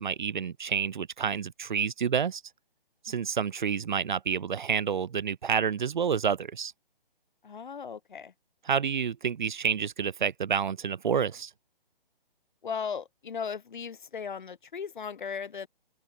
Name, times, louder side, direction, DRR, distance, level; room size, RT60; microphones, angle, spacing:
voice 1, 0.0-2.4 3.0-6.7 8.7-11.5, right 7 dB, 55° right, 0.7 m, -29 dB
voice 2, 7.4-8.3 12.6-15.7, left 6 dB, 55° left, 1.8 m, -37 dB
open air
figure-of-eight pair, 140°, 29 cm